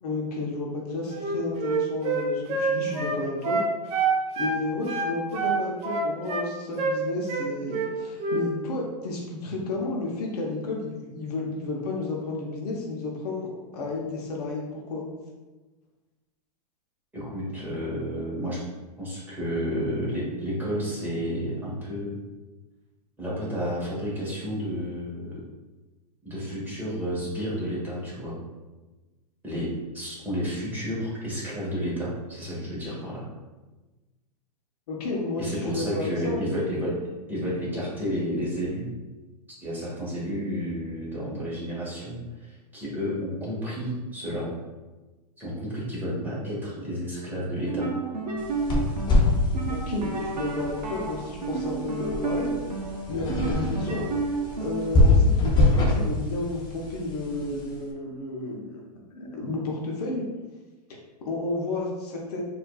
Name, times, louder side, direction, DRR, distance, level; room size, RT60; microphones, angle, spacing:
voice 1, 0.0-3.6 4.4-15.0 34.9-36.4 49.6-52.6 53.1-54.1 54.6-58.8 59.2-60.2 60.9-62.4, left 2 dB, 65° left, -1 dB, 0.8 m, -32 dB
Wind instrument woodwind instrument, 1.1-4.6 4.9-6.5 6.8-7.0 7.3-7.9 8.2-8.5, right 4 dB, 30° right, 0.6 m, -26 dB
voice 2, 17.1-18.6 19.0-22.1 23.2-25.4 26.2-28.4 29.4-33.2 35.4-36.9 37.3-38.9 39.6-44.5 45.4-47.9, equal, 10° right, -7 dB, 1.4 m, -31 dB
sound 1, 47.6-55.0, right 4 dB, 85° right, 0.6 m, -32 dB
sound 2, 48.4-57.8, left 2 dB, 20° left, 0.7 m, -25 dB
4.3 x 2.6 x 2.3 m, 1.2 s
hypercardioid pair, 110°, 21 cm